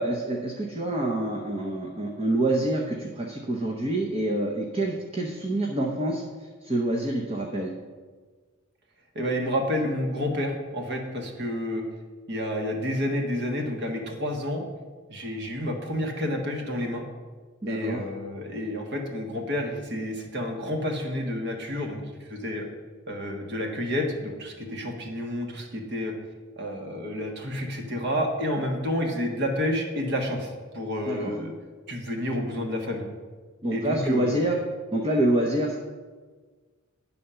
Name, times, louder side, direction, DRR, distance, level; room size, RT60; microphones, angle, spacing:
voice 1, 0.0-7.7 17.6-18.0 31.1-31.3 33.6-34.6 34.9-35.8, right 1 dB, 25° right, -1 dB, 0.8 m, -27 dB
voice 2, 9.1-11.8 12.3-14.6 15.1-17.0 17.7-22.0 22.3-22.6 23.1-26.1 26.6-31.5 31.9-33.0 33.7-34.4, left 1 dB, 55° right, 2 dB, 1.4 m, -29 dB
9.9 x 4.2 x 6.8 m, 1.4 s
head